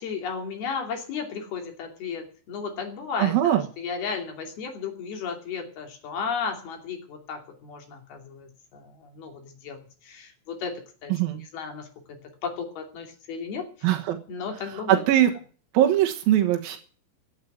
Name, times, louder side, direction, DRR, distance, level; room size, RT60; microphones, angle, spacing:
voice 1, 0.0-10.7 11.0-11.1 11.5-12.2 12.4-13.7 14.3-15.0, left 5 dB, 55° left, 4 dB, 4.4 m, -34 dB
voice 2, 3.2-3.6 11.1-11.4 13.8-14.2 14.7-15.3 15.7-16.8, right 12 dB, 70° right, 4 dB, 2.4 m, -21 dB
16.0 x 9.1 x 9.2 m, 0.43 s
omnidirectional pair, 5.6 m